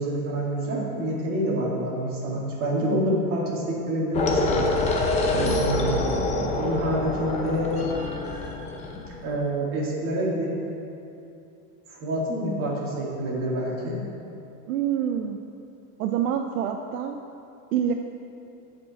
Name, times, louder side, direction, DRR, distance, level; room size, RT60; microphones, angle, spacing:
voice 1, 0.0-4.7 5.3-7.9 9.2-10.5 11.9-14.0, right 1 dB, 30° right, -4 dB, 2.2 m, -27 dB
sound 1, 4.1-9.3, left 2 dB, 15° left, 0.6 m, -26 dB
voice 2, 14.7-15.4 16.0-17.2 17.7-17.9, right 9 dB, 70° right, 5 dB, 0.7 m, -26 dB
15.5 x 5.3 x 4.2 m, 2.7 s
supercardioid pair, 155°, 45 cm